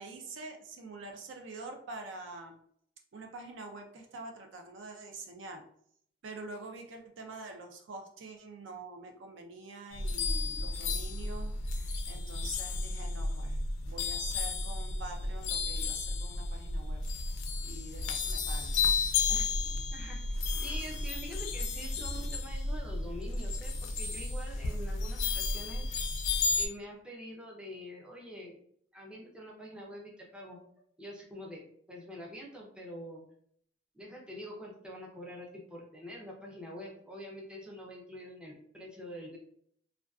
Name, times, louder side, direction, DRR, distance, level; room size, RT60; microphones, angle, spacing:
voice 1, 0.0-2.5 3.1-5.6 6.2-17.0 17.6-19.5, right 3 dB, 70° right, 4 dB, 0.4 m, -46 dB
sound 1, 9.9-26.7, left 3 dB, 80° left, 0.4 m, -33 dB
voice 2, 20.6-26.0 26.6-28.6 28.9-30.6 31.0-33.2 33.9-39.4, equal, 5° right, -2 dB, 0.4 m, -45 dB
2.5 x 2.3 x 2.3 m, 0.64 s
head